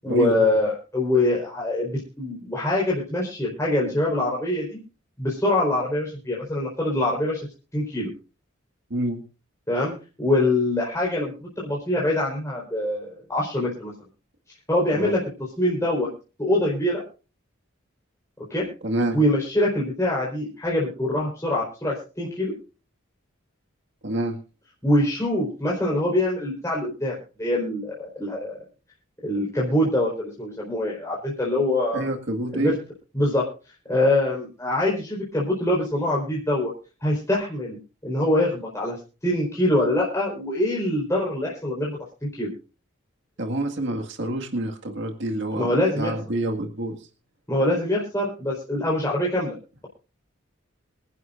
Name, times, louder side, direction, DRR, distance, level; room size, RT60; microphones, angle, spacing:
voice 1, 0.0-4.8 5.2-7.5 7.7-8.1 9.7-13.9 14.7-15.2 15.6-16.1 16.4-17.0 18.5-18.7 19.1-22.5 24.8-28.6 29.2-32.1 32.5-32.8 33.1-33.5 33.9-36.7 37.0-37.8 38.0-42.0 42.3-42.5 45.6-46.1 47.5-49.5, left 1 dB, 15° left, -4 dB, 4.3 m, -24 dB
voice 2, 8.9-9.2 14.9-15.2 18.8-19.2 24.0-24.4 31.9-32.8 43.4-47.0, right 1 dB, 60° right, 3 dB, 1.9 m, -27 dB
26.5 x 11.0 x 2.6 m, 0.33 s
head